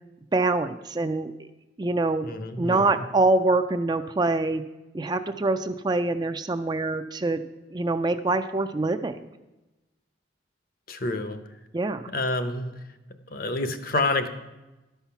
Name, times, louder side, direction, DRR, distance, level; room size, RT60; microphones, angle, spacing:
voice 1, 0.3-1.3 1.8-2.3 2.6-4.6 4.9-7.4 7.7-9.3 11.7-12.1, right 2 dB, 20° right, 9 dB, 0.3 m, -25 dB
voice 2, 2.2-3.0 10.9-11.4 12.1-12.7 13.3-14.3, left 2 dB, 50° left, 9 dB, 0.8 m, -28 dB
12.0 x 5.7 x 5.8 m, 1.0 s
head